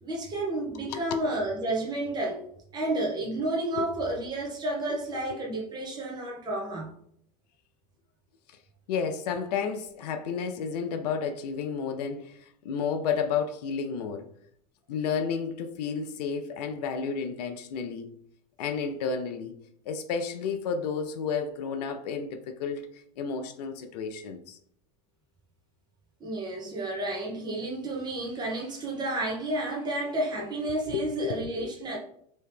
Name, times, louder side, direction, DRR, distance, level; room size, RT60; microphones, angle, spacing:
voice 1, 0.0-2.4 2.7-6.9 26.2-32.0, right 2 dB, 20° right, 1.0 m, -31 dB
voice 2, 0.8-1.2 3.8-3.9 8.9-12.4 12.6-14.3 14.9-18.1 18.6-19.5 19.9-24.6 30.9-31.7, left 6 dB, 75° left, 0.5 m, -31 dB
3.1 x 2.8 x 3.4 m
hypercardioid pair, 105°, 21 cm